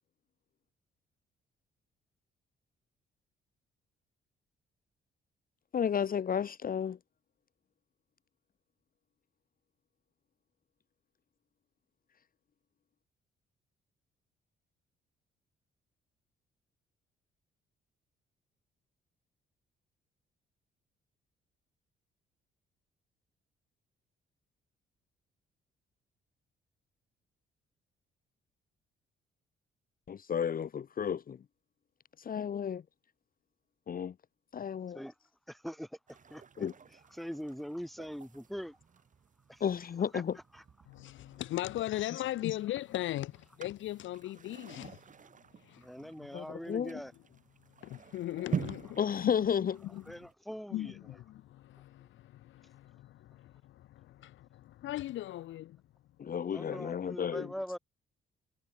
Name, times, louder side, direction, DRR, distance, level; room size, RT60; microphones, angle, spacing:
voice 1, 5.7-7.0 30.1-31.4 32.2-32.8 33.9-34.1 34.5-35.0 36.6-36.7 39.6-40.4 46.3-47.0 49.0-49.8 56.2-57.5, left 8 dB, 45° left, 1.2 m, -32 dB
voice 2, 35.5-36.7 37.1-38.8 39.5-39.6 40.1-40.2 40.5-40.6 45.8-47.1 50.1-51.0 56.5-57.8, equal, ahead, 4.7 m, -42 dB
sound 1, 36.1-50.3, right 6 dB, 40° right, 2.1 m, -46 dB
voice 3, 40.9-45.0 45.6-45.8 46.4-46.5 47.8-49.0 49.2-49.4 49.9-50.0 50.7-55.8, left 14 dB, 75° left, 0.7 m, -38 dB
cardioid pair, 90°, 20 cm